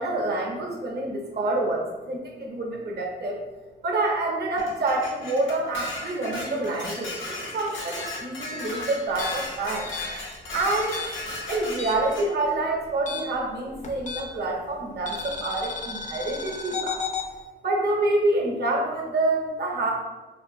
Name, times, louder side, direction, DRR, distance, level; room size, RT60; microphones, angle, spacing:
voice 1, 0.0-3.4 3.8-9.9 10.5-11.0 11.5-17.0 17.6-19.9, right 2 dB, 60° right, 0 dB, 0.6 m, -27 dB
Dishes pots and pans, 4.6-12.3, left 1 dB, 85° left, 0.6 m, -36 dB
sound 1, 9.1-12.2 12.5-14.5 15.1-17.3, left 5 dB, 40° left, 0.4 m, -34 dB
3.0 x 2.3 x 2.6 m, 1.2 s
wide cardioid pair, 110°, 19 cm